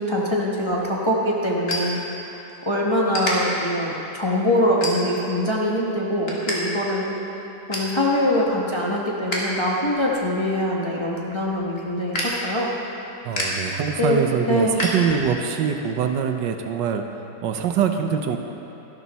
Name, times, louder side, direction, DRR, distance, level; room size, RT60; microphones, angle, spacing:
voice 1, 0.0-7.2 7.7-12.8 14.0-14.8, left 1 dB, 20° left, -4 dB, 0.9 m, -23 dB
sound 1, 0.5-2.6 3.1-3.3 3.9-4.1 4.8-5.4 5.8-6.6 6.9-7.0 7.3-8.0 8.4-9.5 9.8-15.5, left 1 dB, 35° left, 1.9 m, -31 dB
voice 2, 13.2-17.0 17.4-18.4, right 7 dB, 85° right, 6 dB, 1.4 m, -24 dB
12.5 x 11.5 x 4.1 m, 3.0 s
omnidirectional pair, 1.9 m